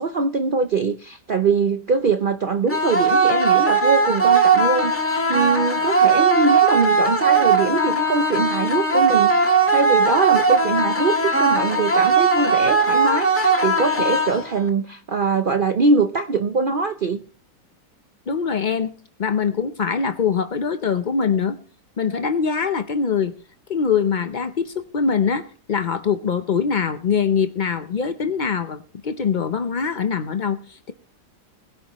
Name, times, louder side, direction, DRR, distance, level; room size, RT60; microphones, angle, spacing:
voice 1, 0.0-17.2, right 4 dB, 75° right, 0.4 m, -22 dB
sound 1, 2.7-14.7, right 3 dB, 10° left, 1.5 m, -18 dB
voice 2, 18.3-18.9 19.2-21.6 22.0-23.3 23.7-30.9, left 6 dB, 75° left, 0.4 m, -23 dB
21.0 x 11.0 x 3.0 m
omnidirectional pair, 1.9 m